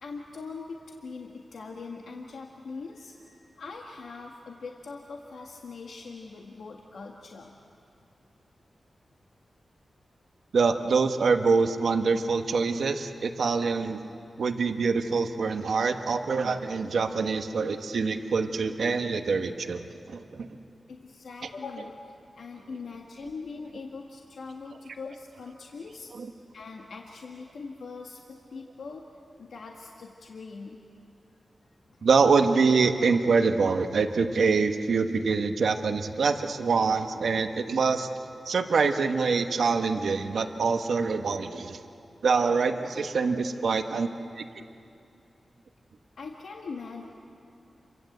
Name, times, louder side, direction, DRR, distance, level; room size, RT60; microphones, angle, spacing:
voice 1, 0.0-7.5 20.9-26.1 26.5-29.0 29.4-30.8 32.0-32.1 46.2-47.1, left 4 dB, 85° left, 0 dB, 1.7 m, -42 dB
voice 2, 10.5-14.0 14.4-20.5 26.2-26.3 32.0-38.1 38.5-41.8 42.2-44.1 44.4-44.5, right 4 dB, 80° right, 6 dB, 1.2 m, -25 dB
28.0 x 23.5 x 8.0 m, 2.6 s
wide cardioid pair, 90°, 0 cm